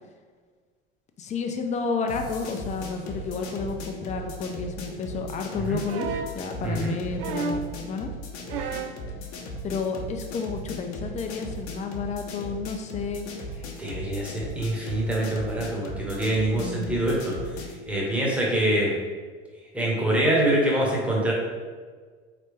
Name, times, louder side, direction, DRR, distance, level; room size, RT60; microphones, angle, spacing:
voice 1, 1.2-8.1 9.6-13.3 16.5-17.0, left 5 dB, 20° left, 4 dB, 0.5 m, -31 dB
sound 1, 2.1-17.8, left 1 dB, 55° left, 0.8 m, -37 dB
sound 2, 5.8-6.4 7.2-7.7 8.5-9.0 10.2-10.3, right 5 dB, 55° right, 0.5 m, -31 dB
voice 2, 6.6-6.9 13.8-17.4 17.9-19.0 19.7-21.3, right 1 dB, 5° right, -4 dB, 1.2 m, -25 dB
4.0 x 3.3 x 3.3 m, 1.5 s
figure-of-eight pair, 75°, 32 cm